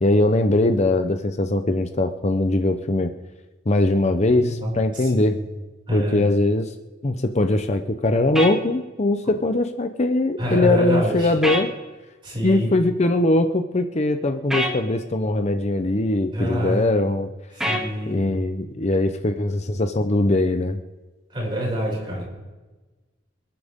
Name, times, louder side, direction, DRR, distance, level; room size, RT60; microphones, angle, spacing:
voice 1, 0.0-3.1 3.7-5.4 5.9-6.7 7.0-11.7 12.4-17.3 18.1-20.8, left 2 dB, 35° left, 8 dB, 0.7 m, -21 dB
voice 2, 4.4-5.4 5.9-6.3 10.4-11.3 12.2-12.7 16.3-16.8 17.5-18.2 21.3-22.2, equal, 25° right, -4 dB, 6.1 m, -26 dB
sound 1, 8.3-8.5 11.4-11.7 14.5-14.7 17.6-17.9, equal, 5° right, 2.4 m, -23 dB
27.0 x 10.0 x 3.7 m, 1.2 s
head